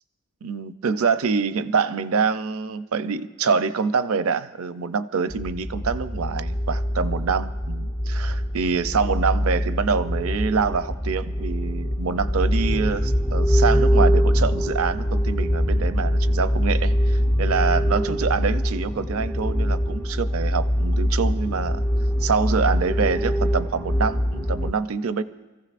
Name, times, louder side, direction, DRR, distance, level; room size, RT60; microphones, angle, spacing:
voice 1, 0.4-21.9 22.2-25.2, right 5 dB, 75° right, 13 dB, 0.5 m, -25 dB
sound 1, 5.3-24.7, equal, 10° left, 0.4 m, -23 dB
28.5 x 15.0 x 2.5 m, 1.1 s
head